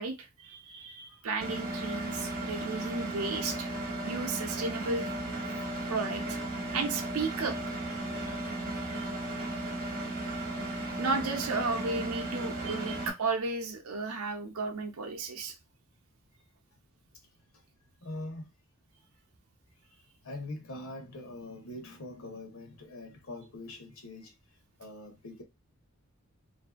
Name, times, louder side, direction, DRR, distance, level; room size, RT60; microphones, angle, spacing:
voice 1, 0.0-3.7 4.0-5.1 5.9-6.2 6.7-7.6 8.2-8.4 8.9-9.1 11.0-15.5, right 4 dB, 80° right, 0.6 m, -34 dB
Engine, 1.4-13.1, right 1 dB, 45° right, 0.8 m, -35 dB
voice 2, 18.0-18.5 20.2-24.3 24.8-25.4, left 1 dB, 70° left, 0.8 m, -43 dB
2.6 x 2.5 x 2.3 m
head